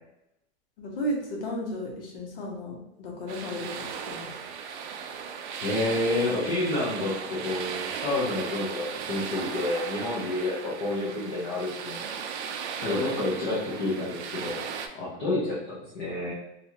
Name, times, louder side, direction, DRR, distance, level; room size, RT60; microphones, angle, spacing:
voice 1, 0.8-4.3, equal, 55° left, -1 dB, 0.9 m, -34 dB
sound 1, 3.3-14.9, right 6 dB, 75° right, 0.5 m, -36 dB
voice 2, 5.6-12.1 12.8-14.6 14.9-16.3, left 2 dB, 25° left, -8 dB, 0.6 m, -29 dB
2.7 x 2.4 x 2.9 m, 0.85 s
supercardioid pair, 170°, 34 cm